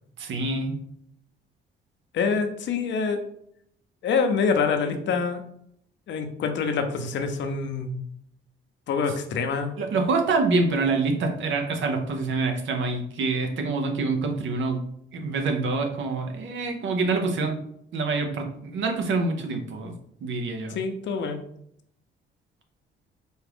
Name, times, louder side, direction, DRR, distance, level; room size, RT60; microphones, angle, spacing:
voice 1, 0.2-0.8 9.8-14.8 15.1-17.6 17.9-20.8, right 3 dB, 70° right, 4 dB, 0.8 m, -26 dB
voice 2, 2.1-3.2 4.0-5.4 6.1-8.0 8.9-9.7 20.7-21.4, left 5 dB, 65° left, 6 dB, 0.6 m, -26 dB
4.2 x 2.4 x 3.4 m, 0.70 s
cardioid pair, 90°, 20 cm